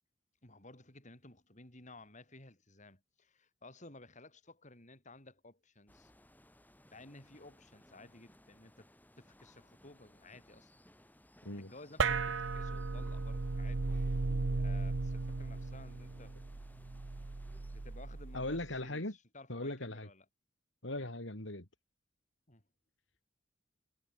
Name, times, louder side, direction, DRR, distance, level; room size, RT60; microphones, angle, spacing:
voice 1, 0.4-6.1 6.9-8.9 9.2-10.7 11.5-14.3 14.6-16.4 17.7-20.3 21.0-21.1 22.5-22.6, left 2 dB, 40° left, 6.9 m, -56 dB
sound 1, 5.9-18.8, left 1 dB, 10° left, 7.8 m, -63 dB
sound 2, 12.0-18.7, right 3 dB, 80° right, 0.9 m, -36 dB
voice 2, 18.3-19.1 19.5-20.1 20.8-21.7, left 1 dB, 75° left, 4.8 m, -39 dB
head